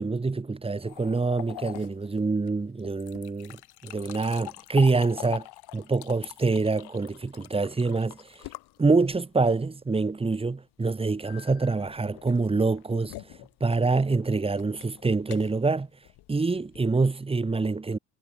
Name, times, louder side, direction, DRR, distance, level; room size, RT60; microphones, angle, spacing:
voice 1, 0.0-5.5 5.7-8.2 8.8-13.1 13.6-15.9 16.3-18.0, right 3 dB, 15° right, 2.2 m, -26 dB
sound 1, 0.8-9.5 11.2-17.0, left 17 dB, 85° left, 3.0 m, -44 dB
cardioid pair, 155°, 38 cm